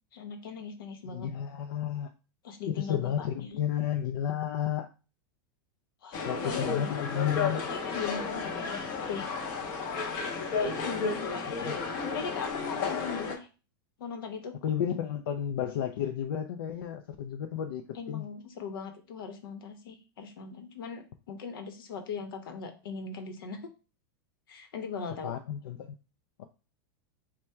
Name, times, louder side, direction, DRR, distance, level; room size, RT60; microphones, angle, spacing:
voice 1, 0.1-1.3 2.4-3.6 6.0-6.9 7.4-9.3 10.6-13.5 14.0-14.6 17.9-23.7 24.5-25.3, left 5 dB, 90° left, 6 dB, 0.9 m, -39 dB
voice 2, 1.1-2.1 2.7-4.9 6.2-7.6 11.6-11.7 14.6-17.8 18.1-18.3 25.2-26.0 26.4-26.5, left 9 dB, 75° left, 5 dB, 0.4 m, -32 dB
sound 1, 6.1-13.4, left 5 dB, 30° left, 0.6 m, -33 dB
3.5 x 2.2 x 4.3 m, 0.33 s
supercardioid pair, 175°, 12 cm